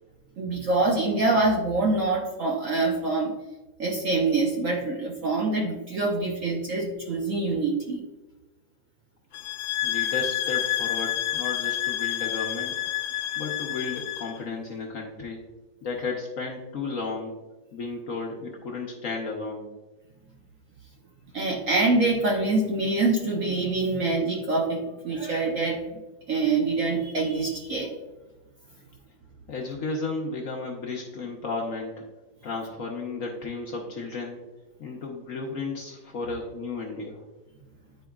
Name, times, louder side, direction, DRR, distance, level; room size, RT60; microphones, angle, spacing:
voice 1, 0.4-3.3 3.8-8.0 21.3-25.8 26.3-27.9, right 3 dB, 55° right, -1 dB, 0.9 m, -25 dB
sound 1, 9.3-14.4, left 13 dB, 80° left, 1.4 m, -29 dB
voice 2, 9.8-12.8 13.4-15.4 15.8-17.3 17.7-19.7 29.5-32.0 32.4-34.4 34.8-37.2, left 3 dB, 55° left, -1 dB, 1.0 m, -33 dB
10.5 x 4.5 x 2.3 m, 1.1 s
omnidirectional pair, 2.1 m